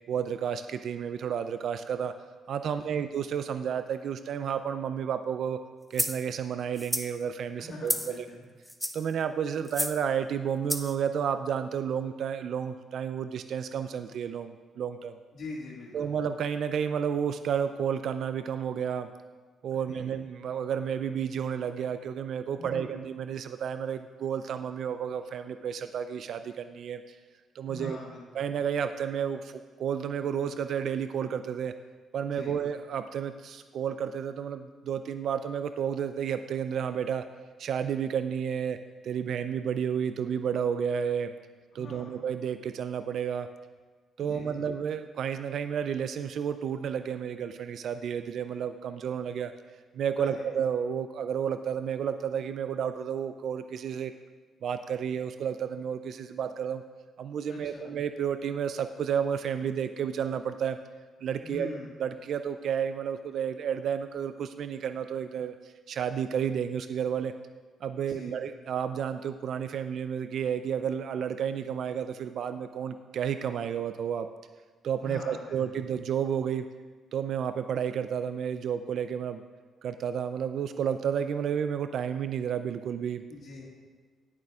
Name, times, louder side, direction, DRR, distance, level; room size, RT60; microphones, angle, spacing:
voice 1, 0.1-2.1 2.5-5.6 5.9-8.3 8.9-15.2 15.9-19.1 19.6-27.2 27.6-28.0 28.3-31.7 32.1-37.2 37.6-38.8 39.0-41.3 41.7-43.5 44.2-49.5 49.9-54.1 54.6-56.8 57.2-60.8 61.2-61.7 62.0-67.3 67.8-74.3 74.8-76.7 77.1-79.4 79.8-83.2, right 8 dB, 65° right, 10 dB, 0.3 m, -31 dB
voice 2, 2.7-3.1 7.6-8.4 15.3-16.2 19.7-20.1 22.6-23.0 27.7-28.2 32.2-32.6 41.7-42.2 44.2-44.6 50.2-50.5 57.5-57.9 61.4-61.9 68.0-68.4 75.0-75.6 83.3-83.8, left 3 dB, 65° left, -4 dB, 1.5 m, -44 dB
sound 1, 5.9-6.2 6.8-7.1 7.9-8.2 8.7-9.1 9.7-10.0 10.7-10.9, equal, ahead, 0.6 m, -31 dB
18.0 x 6.6 x 2.4 m, 1.4 s
cardioid pair, 90°, 0 cm